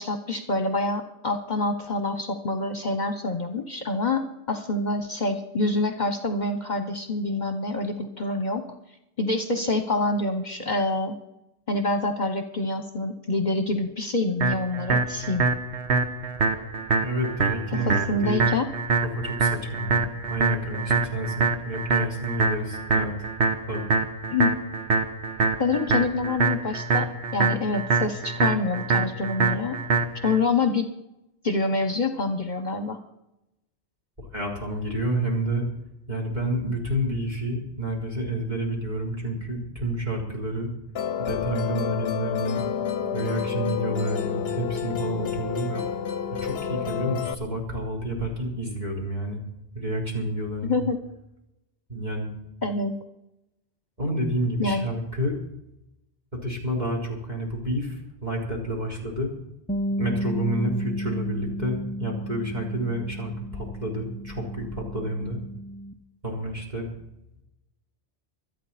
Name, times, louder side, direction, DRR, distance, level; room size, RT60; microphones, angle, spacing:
voice 1, 0.0-8.7 9.2-11.1 11.7-15.5 17.9-18.7 24.3-24.6 25.6-29.8 30.2-30.9 31.4-33.0 50.6-51.0 52.6-52.9 54.6-54.9, left 3 dB, 45° left, 7 dB, 1.1 m, -26 dB
sound 1, 14.4-30.4, right 4 dB, 75° right, 1.4 m, -25 dB
voice 2, 17.0-18.4 19.0-23.1 23.7-23.9 34.2-35.6 36.1-40.7 41.2-42.6 43.1-45.8 46.3-49.4 49.7-50.8 51.9-52.3 54.0-55.3 56.3-59.3 60.0-65.4 66.2-66.9, right 1 dB, 40° right, -1 dB, 4.2 m, -29 dB
Musical instrument, 41.0-47.4, left 8 dB, 65° left, 0.9 m, -29 dB
Bass guitar, 59.7-65.9, equal, 10° left, 0.4 m, -33 dB
25.5 x 9.0 x 4.3 m, 0.88 s
omnidirectional pair, 1.1 m